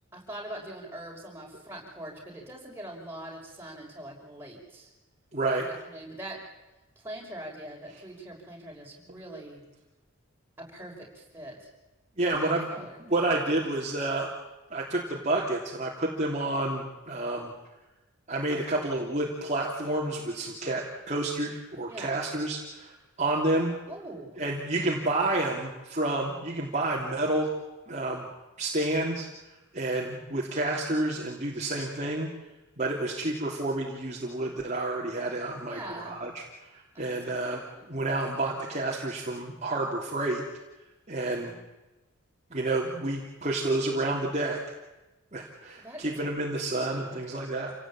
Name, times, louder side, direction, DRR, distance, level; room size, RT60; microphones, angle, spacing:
voice 1, 0.1-4.9 5.5-6.4 7.0-9.6 10.6-11.7 12.4-13.0 21.9-22.2 23.9-24.4 35.7-36.1 36.9-37.2 37.7-37.9 41.3-41.6 45.8-46.3 46.8-47.0, right 1 dB, 10° right, -2 dB, 6.0 m, -43 dB
voice 2, 5.3-5.7 12.2-14.3 14.7-17.5 18.3-22.9 23.2-23.7 24.4-27.5 27.9-28.3 28.6-29.3 29.7-32.3 32.8-36.4 37.0-37.6 37.9-40.4 41.1-41.5 42.5-44.6 45.3-47.7, right 2 dB, 35° right, -3 dB, 3.1 m, -29 dB
28.0 x 18.0 x 8.9 m, 1.1 s
head